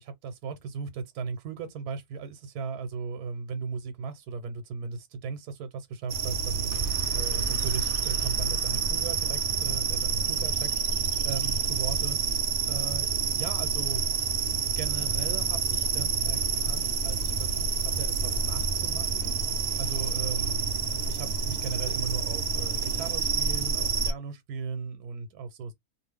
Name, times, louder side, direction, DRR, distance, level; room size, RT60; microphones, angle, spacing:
voice 1, 0.0-10.8 11.2-14.0 14.8-19.4 19.8-20.7 21.1-25.7, right 5 dB, 85° right, 1.2 m, -37 dB
sound 1, 6.1-24.1, right 5 dB, 65° right, 0.9 m, -28 dB
sound 2, 6.7-11.0, equal, 10° left, 1.1 m, -41 dB
2.6 x 2.5 x 3.3 m
omnidirectional pair, 1.6 m